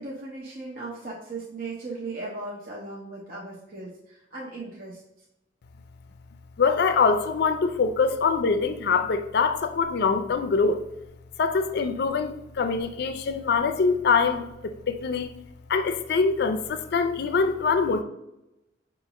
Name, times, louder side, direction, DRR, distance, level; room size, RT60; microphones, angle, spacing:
voice 1, 0.0-5.0, right 3 dB, 50° right, -4 dB, 0.7 m, -37 dB
voice 2, 6.6-10.9 11.4-15.3 15.7-18.0, left 5 dB, 60° left, 9 dB, 0.4 m, -24 dB
5.7 x 2.4 x 3.0 m, 0.87 s
head